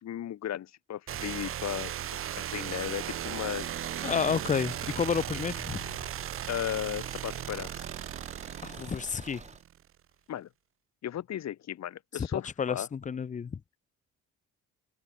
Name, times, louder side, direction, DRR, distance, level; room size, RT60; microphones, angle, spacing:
voice 1, 0.0-1.9 2.4-3.8 6.5-7.8 10.3-10.5 11.0-12.9, left 11 dB, 60° left, 1.6 m, -35 dB
sound 1, 1.1-9.8, right 11 dB, 45° right, 0.6 m, -37 dB
Car / Engine, 2.6-9.6, right 4 dB, 25° right, 1.9 m, -48 dB
voice 2, 4.0-5.8 8.6-9.4 12.1-13.8, left 6 dB, 25° left, 0.5 m, -31 dB
cardioid pair, 90°, 30 cm